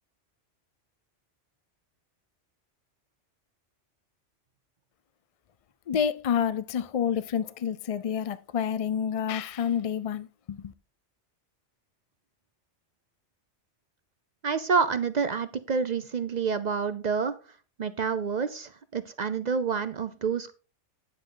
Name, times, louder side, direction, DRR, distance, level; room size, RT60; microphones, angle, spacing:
voice 1, 5.9-10.7, left 8 dB, 65° left, 0.3 m, -29 dB
voice 2, 14.4-17.3 17.8-20.5, right 5 dB, 50° right, 0.5 m, -28 dB
9.7 x 7.5 x 3.8 m
omnidirectional pair, 1.2 m